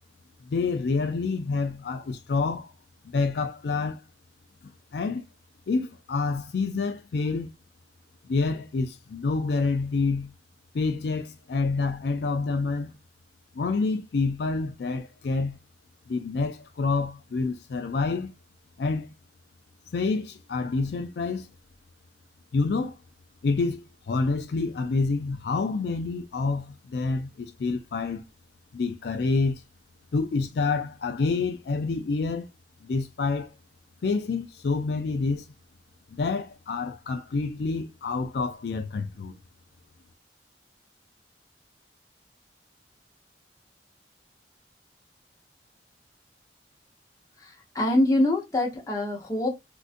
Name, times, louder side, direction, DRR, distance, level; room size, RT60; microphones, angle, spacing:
voice 1, 0.5-2.7 3.1-4.0 4.9-5.2 5.7-7.5 8.2-10.3 10.7-12.9 13.5-15.6 16.1-18.3 18.8-19.1 19.9-21.5 22.5-23.0 23.4-28.2 28.7-29.6 30.1-32.5 32.8-33.5 34.0-35.5 36.1-39.4, left 4 dB, 65° left, 0.4 m, -28 dB
voice 2, 47.4-49.5, left 1 dB, 20° left, 0.9 m, -25 dB
3.7 x 2.6 x 2.5 m
head